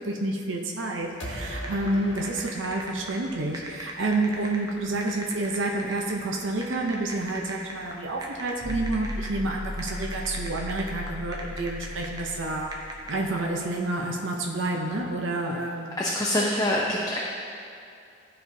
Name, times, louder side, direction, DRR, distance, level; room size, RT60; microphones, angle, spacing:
voice 1, 0.0-12.7 13.1-16.0, right 2 dB, 85° right, 0 dB, 0.7 m, -29 dB
sound 1, 1.2-4.1, equal, 85° left, 1.2 m, -39 dB
sound 2, 1.6-13.2, right 2 dB, 20° right, 0.8 m, -41 dB
sound 3, 8.6-13.6, left 1 dB, 40° right, 1.6 m, -37 dB
voice 2, 16.0-17.2, left 1 dB, 20° left, -4 dB, 0.6 m, -25 dB
12.5 x 4.4 x 2.7 m, 2.5 s
head